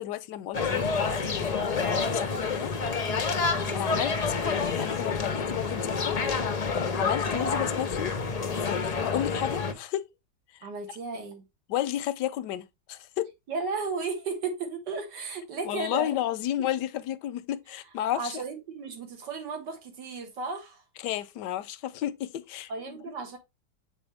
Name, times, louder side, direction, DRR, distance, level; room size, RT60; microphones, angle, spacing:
voice 1, 0.0-2.7 3.7-6.2 6.9-8.1 8.5-10.1 11.7-13.3 15.6-18.3 21.0-22.7, left 12 dB, 85° left, 1.2 m, -32 dB
sound 1, 0.5-9.7, left 4 dB, 70° left, 0.3 m, -28 dB
voice 2, 10.6-11.4 13.5-16.1 18.2-20.8 22.7-23.4, right 4 dB, 85° right, 2.1 m, -34 dB
7.0 x 4.3 x 3.3 m
omnidirectional pair, 1.8 m